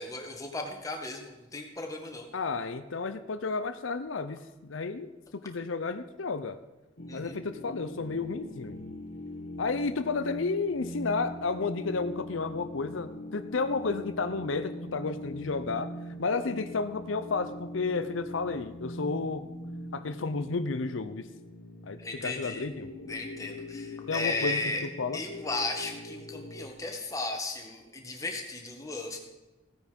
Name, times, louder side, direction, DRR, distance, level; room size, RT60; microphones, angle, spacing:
voice 1, 0.0-2.3 7.1-7.4 22.0-22.6 23.1-24.8 25.1-29.2, left 2 dB, 15° left, 2 dB, 1.8 m, -35 dB
voice 2, 2.3-6.6 7.1-8.8 9.6-15.9 16.2-19.4 19.9-21.3 21.8-22.9 24.1-24.6 25.0-25.2, left 4 dB, 85° left, 11 dB, 0.7 m, -32 dB
sound 1, 7.0-26.7, left 1 dB, 65° left, 1.4 m, -42 dB
16.0 x 9.5 x 5.3 m, 1.1 s
head